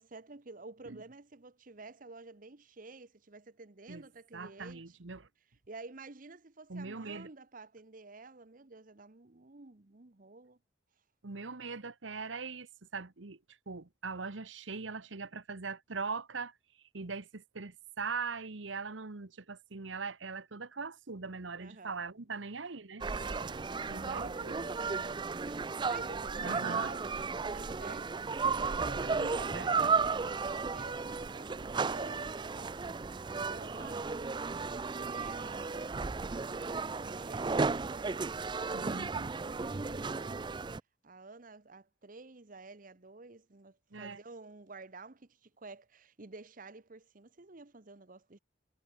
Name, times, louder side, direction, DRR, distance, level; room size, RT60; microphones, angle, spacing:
voice 1, 0.0-5.0 5.7-10.6 21.6-22.0 23.1-28.2 28.5-33.0 33.5-40.5 41.0-48.4, right 3 dB, 45° right, 1.0 m, -51 dB
voice 2, 4.3-5.3 6.7-7.3 11.2-13.4 13.7-16.5 16.9-23.0 23.9-24.6 26.4-26.9 29.0-29.7 38.7-39.3 43.9-44.2, right 4 dB, 85° right, 1.2 m, -41 dB
sound 1, 23.0-40.8, right 4 dB, 25° right, 0.4 m, -34 dB
head